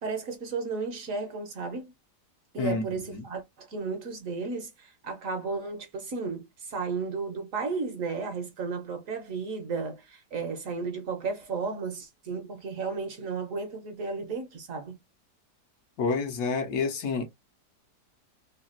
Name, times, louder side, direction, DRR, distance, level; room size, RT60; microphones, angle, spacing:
voice 1, 0.0-1.9 2.5-15.0, right 4 dB, 60° right, 1.0 m, -34 dB
voice 2, 16.0-17.3, left 4 dB, 70° left, 1.1 m, -28 dB
3.3 x 2.2 x 2.4 m
omnidirectional pair, 1.8 m